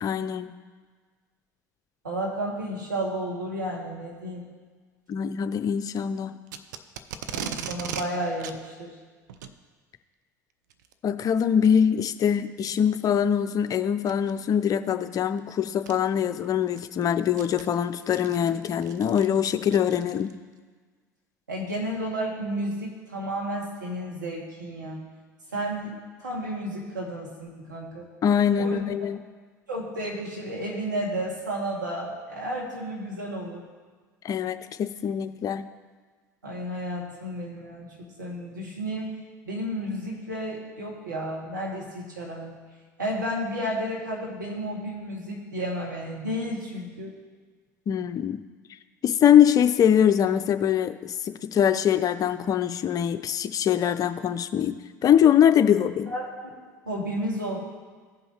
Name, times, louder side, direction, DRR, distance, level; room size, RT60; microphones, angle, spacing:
voice 1, 0.0-0.5 5.1-6.3 11.0-20.4 28.2-29.2 34.2-35.7 47.9-48.4 49.0-54.8 55.0-56.1, left 9 dB, 35° left, 10 dB, 0.5 m, -23 dB
voice 2, 2.0-4.4 7.3-8.9 21.5-25.0 25.5-28.1 28.6-28.8 29.7-33.6 36.4-39.1 39.4-42.6 43.0-47.1 56.0-56.5 56.9-57.7, right 1 dB, 85° right, -4 dB, 2.1 m, -32 dB
Packing tape duct tape, 6.5-8.1 8.4-8.6 9.3-9.6 10.7-10.9 11.6-11.7 12.4-12.5 14.0-14.3 15.4-15.5 15.9-16.0 16.4-20.4, right 7 dB, 70° right, 0.5 m, -38 dB
16.0 x 5.5 x 3.0 m, 1.5 s
figure-of-eight pair, 70°, 10 cm